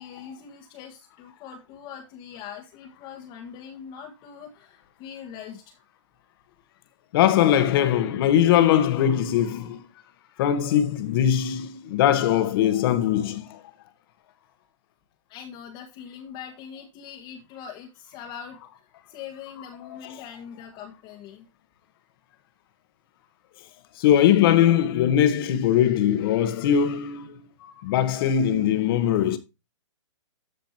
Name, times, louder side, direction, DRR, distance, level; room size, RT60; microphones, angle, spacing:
voice 1, 0.0-5.8 15.3-21.4, left 8 dB, 30° left, 1.6 m, -42 dB
voice 2, 7.1-9.8 10.4-13.6 24.0-27.4 27.6-29.4, left 10 dB, 45° left, 1.5 m, -21 dB
13.5 x 5.1 x 2.9 m
hypercardioid pair, 135°, 16 cm